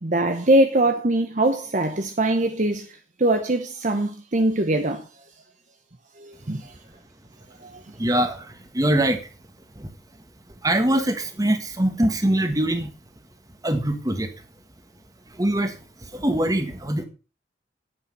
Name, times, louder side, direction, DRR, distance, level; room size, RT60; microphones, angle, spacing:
voice 1, 0.0-5.1 6.2-6.7 7.6-7.8, right 1 dB, 45° right, 0.9 m, -22 dB
voice 2, 7.9-9.3 9.7-9.9 10.6-12.9 13.6-14.3 15.3-17.0, right 1 dB, 20° right, 1.7 m, -23 dB
9.8 x 8.7 x 5.6 m
head